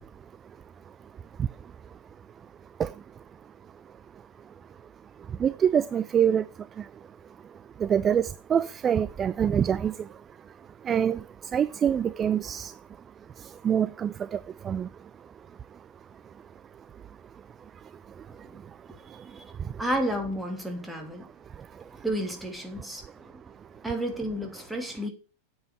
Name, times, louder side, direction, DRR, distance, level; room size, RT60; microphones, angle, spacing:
voice 1, 5.4-6.4 7.8-9.9 10.9-11.2 11.5-12.7 13.6-14.4 14.6-14.9, right 8 dB, 25° right, 0.4 m, -25 dB
voice 2, 19.8-21.3 21.9-23.4 23.8-25.1, right 1 dB, 5° right, 3.0 m, -32 dB
9.1 x 8.0 x 5.1 m
figure-of-eight pair, 90°, 0 cm